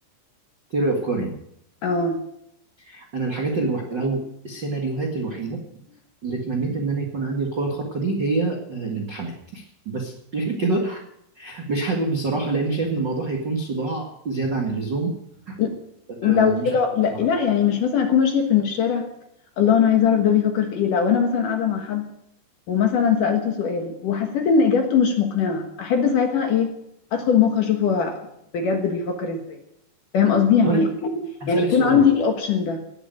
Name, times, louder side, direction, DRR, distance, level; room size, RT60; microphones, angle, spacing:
voice 1, 0.7-1.3 2.8-5.6 6.2-11.0 11.3-15.1 15.5-15.6 16.2-16.7 30.6-30.8 31.4-32.0, right 3 dB, 70° right, 1 dB, 1.0 m, -26 dB
voice 2, 1.8-2.2 15.6-15.7 16.2-19.1 19.6-22.1 22.7-26.7 27.1-28.2 28.5-29.6 30.1-32.8, left 7 dB, 60° left, 4 dB, 2.4 m, -20 dB
18.5 x 8.0 x 9.0 m, 0.78 s
omnidirectional pair, 5.3 m